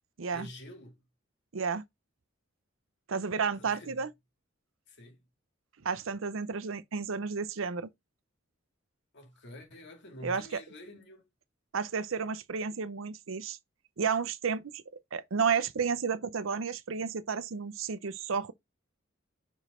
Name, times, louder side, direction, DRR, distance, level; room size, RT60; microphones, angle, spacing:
voice 1, 0.3-1.0 3.5-4.1 4.9-5.2 9.1-11.3, left 1 dB, 60° left, 2.4 m, -48 dB
voice 2, 1.5-1.8 3.1-4.1 5.8-7.9 10.2-10.6 11.7-13.6 14.0-14.8 15.1-18.5, right 5 dB, 80° right, 0.7 m, -32 dB
5.5 x 5.0 x 4.3 m
head